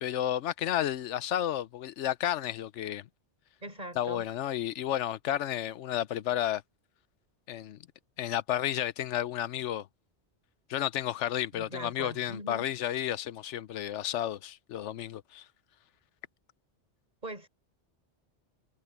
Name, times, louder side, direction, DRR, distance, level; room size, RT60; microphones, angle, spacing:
voice 1, 0.0-3.1 4.0-6.6 7.5-7.8 8.2-9.9 10.7-15.4, left 11 dB, 85° left, 1.0 m, -32 dB
voice 2, 3.6-4.3 11.5-12.7 17.2-17.5, right 1 dB, 40° right, 4.7 m, -41 dB
omnidirectional pair, 1.2 m